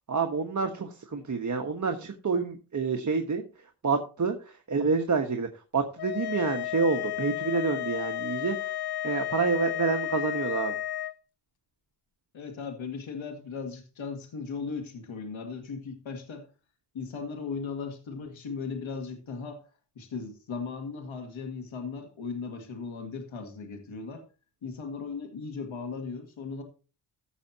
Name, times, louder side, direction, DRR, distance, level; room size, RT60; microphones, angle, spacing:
voice 1, 0.1-3.4 3.8-5.5 5.7-8.6 9.0-10.7, right 4 dB, 40° right, 4 dB, 1.3 m, -28 dB
sound 1, 6.0-11.1, left 13 dB, 55° left, 0.6 m, -33 dB
voice 2, 12.3-16.5 16.9-19.6 20.0-24.3 24.6-26.6, left 5 dB, 80° left, 4 dB, 2.2 m, -37 dB
15.5 x 6.6 x 2.9 m, 0.34 s
cardioid pair, 85°, 46 cm